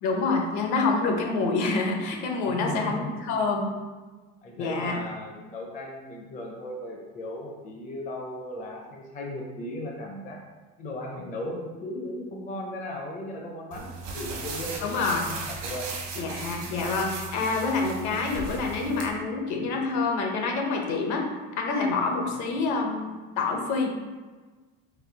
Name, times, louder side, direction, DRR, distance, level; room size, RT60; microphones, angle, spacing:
voice 1, 0.0-3.8 4.6-5.0 11.2-11.3 13.8-13.9 14.8-15.3 16.2-21.2 21.6-23.9, left 3 dB, 60° left, 2 dB, 0.8 m, -27 dB
voice 2, 2.4-3.1 4.4-10.4 10.8-15.9, left 1 dB, 25° left, -1 dB, 0.5 m, -37 dB
sound 1, 13.7-19.1, right 4 dB, 75° right, 1.0 m, -37 dB
4.3 x 2.3 x 3.9 m, 1.3 s
cardioid pair, 135°, 33 cm